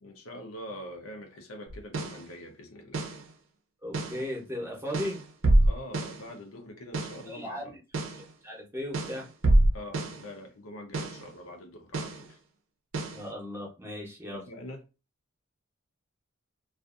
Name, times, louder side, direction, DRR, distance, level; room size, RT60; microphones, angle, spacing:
voice 1, 0.0-3.1 5.6-7.8 9.7-12.4 14.3-14.8, left 1 dB, 85° left, 0.7 m, -44 dB
sound 1, 1.7-2.3 2.9-3.3 3.9-4.3 4.9-6.3 6.9-7.3 7.9-8.3 8.9-10.3 10.9-11.3 11.9-12.3 12.9-13.3, right 1 dB, 70° right, 0.6 m, -26 dB
voice 2, 3.8-5.2 7.2-7.7 8.4-9.3 13.1-14.4, left 1 dB, 10° right, 0.7 m, -36 dB
2.5 x 2.4 x 2.4 m
head